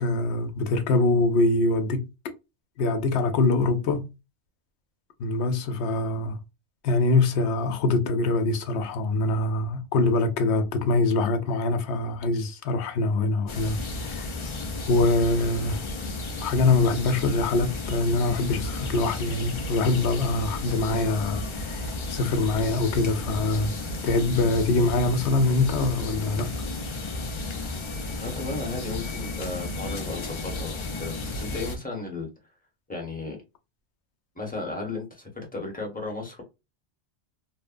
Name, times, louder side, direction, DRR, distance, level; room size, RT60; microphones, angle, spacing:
voice 1, 0.0-2.1 2.8-4.1 5.2-6.4 6.8-14.3 14.9-15.8 16.4-23.7 24.0-26.5, left 2 dB, 85° left, 0.9 m, -24 dB
sound 1, 13.5-31.8, left 2 dB, 50° left, 0.3 m, -33 dB
voice 2, 28.2-32.3 32.9-33.4 34.3-36.4, left 3 dB, 10° left, 0.9 m, -34 dB
2.8 x 2.1 x 2.4 m
omnidirectional pair, 1.1 m